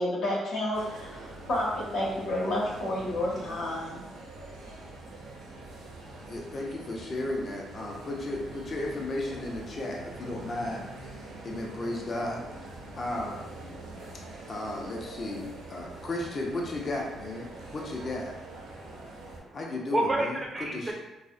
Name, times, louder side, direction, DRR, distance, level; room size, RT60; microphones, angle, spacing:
voice 1, 0.0-4.0, left 1 dB, 75° left, -4 dB, 0.8 m, -30 dB
sound 1, 0.7-19.4, right 2 dB, 85° right, 0.5 m, -44 dB
voice 2, 6.3-10.9 11.4-12.4 13.0-13.4 14.5-18.3 19.5-20.4 20.7-20.9, left 2 dB, 35° left, -1 dB, 0.4 m, -34 dB
voice 3, 18.6-19.6 19.9-20.3 20.5-20.9, right 1 dB, 20° right, 0 dB, 0.4 m, -30 dB
2.6 x 2.0 x 2.4 m, 0.97 s
cardioid pair, 115°, 0 cm